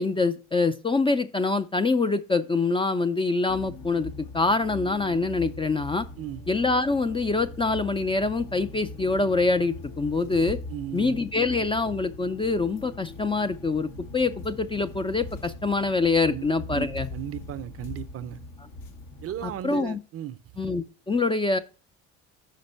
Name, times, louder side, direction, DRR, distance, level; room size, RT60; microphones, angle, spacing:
voice 1, 0.0-6.1 6.5-10.6 10.9-17.1 19.4-20.0 20.6-21.6, left 3 dB, 15° left, 0.4 m, -25 dB
sound 1, 3.5-19.6, left 2 dB, 70° left, 1.4 m, -41 dB
voice 2, 10.7-11.2 16.3-16.5 16.7-16.9 17.1-18.4 19.2-20.4, right 12 dB, 45° right, 0.5 m, -35 dB
5.4 x 5.2 x 5.3 m
supercardioid pair, 75°, 33 cm